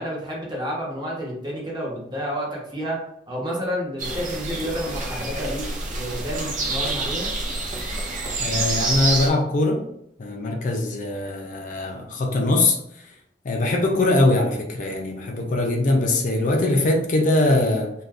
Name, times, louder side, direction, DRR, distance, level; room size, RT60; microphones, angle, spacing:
voice 1, 0.0-3.0 3.3-7.3, equal, 25° right, 0.9 m, -30 dB
sound 1, 4.0-9.3, right 2 dB, 45° right, 0.6 m, -27 dB
voice 2, 8.4-9.9 10.2-12.8 13.4-17.9, left 2 dB, 45° left, 0.4 m, -22 dB
2.5 x 2.3 x 3.4 m
head